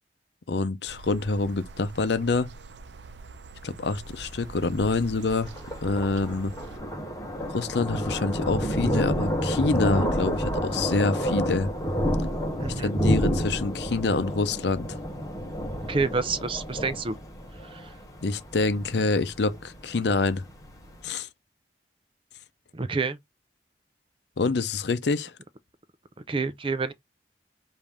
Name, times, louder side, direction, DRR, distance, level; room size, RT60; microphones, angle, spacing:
voice 1, 0.5-2.5 3.6-5.5 5.8-6.5 7.5-11.7 12.8-15.0 18.2-20.4 21.0-21.3 24.4-25.3, left 3 dB, 75° left, 0.6 m, -26 dB
sound 1, 0.9-6.8, right 3 dB, 85° right, 0.6 m, -44 dB
Thunder, 4.1-21.0, equal, 20° left, 1.0 m, -29 dB
voice 2, 15.9-17.2 17.7-17.8 22.7-23.2 26.3-26.9, right 4 dB, 30° right, 0.5 m, -28 dB
5.2 x 2.7 x 3.4 m
head